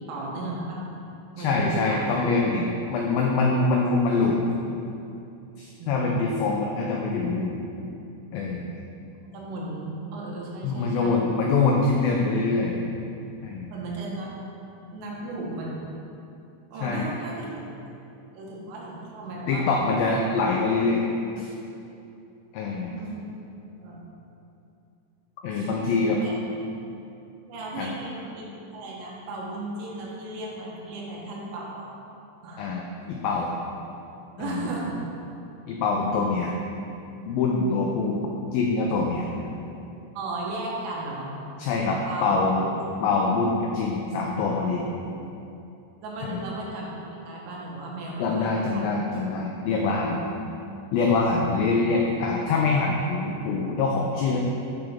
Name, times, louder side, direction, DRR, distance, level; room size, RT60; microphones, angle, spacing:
voice 1, 0.1-0.8 1.4-2.1 5.8-6.4 9.3-11.3 13.7-14.3 14.9-15.9 16.7-17.5 18.3-19.7 22.8-23.2 23.8-24.0 25.5-25.7 26.2-26.3 27.5-28.4 28.7-31.9 32.4-32.7 34.4-35.1 40.1-41.3 42.0-42.5 42.7-42.8 46.0-48.8, right 2 dB, 90° right, -3 dB, 3.5 m, -35 dB
voice 2, 1.4-4.4 5.6-7.6 8.3-8.6 10.6-12.8 13.4-13.7 16.8-17.1 19.5-21.1 21.4-21.5 22.5-22.9 25.4-26.2 27.8-27.9 32.6-33.5 34.4-34.7 35.7-36.6 37.3-39.3 41.6-42.6 43.0-44.8 46.2-46.4 48.2-50.2 50.9-54.4, left 3 dB, 85° left, -1 dB, 2.0 m, -24 dB
8.3 x 6.6 x 3.5 m, 2.7 s
omnidirectional pair, 4.9 m